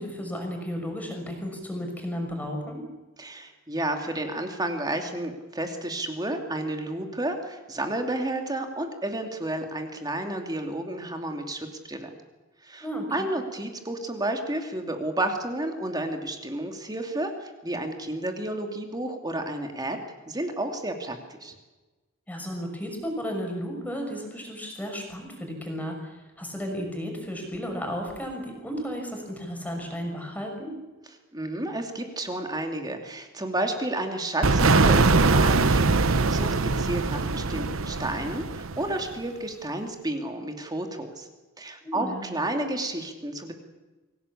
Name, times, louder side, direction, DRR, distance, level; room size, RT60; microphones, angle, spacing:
voice 1, 0.0-2.8 12.8-13.3 22.3-30.7 41.8-42.2, equal, 10° left, 2 dB, 6.0 m, -34 dB
voice 2, 3.2-12.1 12.6-20.0 20.3-21.5 31.3-41.3 41.6-43.5, right 1 dB, 20° right, 4 dB, 2.8 m, -31 dB
sound 1, 34.4-39.1, right 3 dB, 70° right, 1.0 m, -22 dB
25.0 x 17.5 x 8.6 m, 1.2 s
head